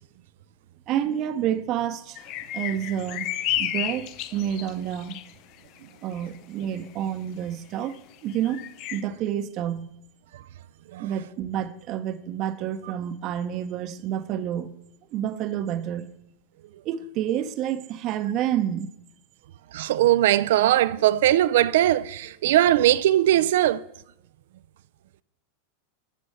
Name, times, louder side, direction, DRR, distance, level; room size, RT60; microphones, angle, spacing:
voice 1, 0.9-2.3 2.5-3.3 3.6-5.2 6.0-9.9 11.0-14.7 15.1-16.1 16.8-18.9, right 10 dB, 40° right, 0.7 m, -29 dB
sound 1, 2.1-5.3 6.2-6.3 6.8-6.9 7.8-7.9 8.3-9.0, left 13 dB, 50° left, 0.5 m, -31 dB
voice 2, 19.7-23.8, right 13 dB, 70° right, 0.3 m, -20 dB
11.5 x 4.3 x 6.5 m
hypercardioid pair, 125°, 0 cm